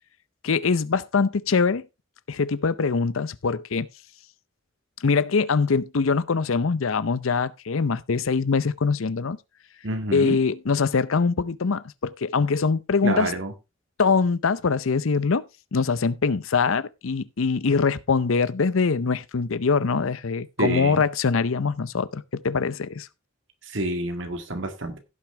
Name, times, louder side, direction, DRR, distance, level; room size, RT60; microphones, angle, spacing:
voice 1, 0.4-1.8 2.3-3.9 5.0-9.4 10.1-13.3 14.0-15.4 15.7-23.1, left 5 dB, 80° left, 0.6 m, -23 dB
voice 2, 9.8-10.4 13.0-13.5 20.6-21.1 23.6-25.0, right 1 dB, 65° right, 1.9 m, -28 dB
16.5 x 6.1 x 3.3 m
head